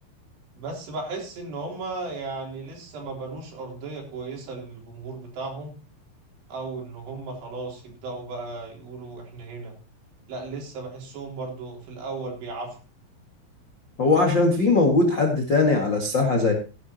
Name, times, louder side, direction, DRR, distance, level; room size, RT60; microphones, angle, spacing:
voice 1, 0.6-5.7 6.5-9.7 10.3-12.8, right 3 dB, 55° right, 0 dB, 5.4 m, -35 dB
voice 2, 14.0-16.5, left 3 dB, 55° left, 3 dB, 1.2 m, -20 dB
17.0 x 11.5 x 2.9 m, 0.32 s
omnidirectional pair, 5.9 m